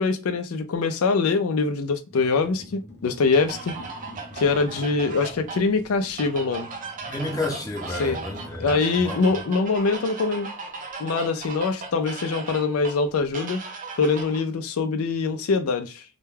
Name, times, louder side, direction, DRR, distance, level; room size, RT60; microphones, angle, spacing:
voice 1, 0.0-3.8 4.3-6.7 8.0-8.2 8.6-10.5 11.0-13.6 14.0-16.0, left 4 dB, 80° left, 0.4 m, -23 dB
sound 1, 2.1-8.8, left 1 dB, 50° left, 0.8 m, -45 dB
sound 2, 3.3-14.4, right 4 dB, 40° right, 0.5 m, -37 dB
voice 2, 7.1-9.2, left 2 dB, 15° left, 0.6 m, -31 dB
2.2 x 2.1 x 3.2 m
head